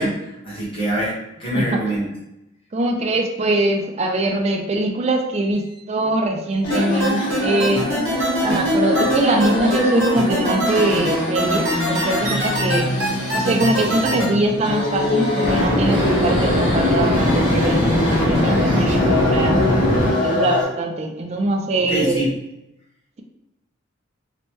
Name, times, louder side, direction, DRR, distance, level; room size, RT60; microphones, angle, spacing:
voice 1, 0.0-2.1 21.9-22.3, right 1 dB, 25° left, -7 dB, 1.1 m, -24 dB
voice 2, 2.7-7.9 8.4-12.9 13.3-19.6 20.2-22.2, right 2 dB, 35° right, 3 dB, 0.3 m, -22 dB
sound 1, 6.6-20.6, left 1 dB, 75° left, 1.4 m, -23 dB
sound 2, 6.7-14.2, right 2 dB, 75° right, 1.0 m, -24 dB
sound 3, 15.4-20.1, left 1 dB, 10° right, 0.8 m, -20 dB
3.0 x 2.2 x 2.9 m, 0.90 s
head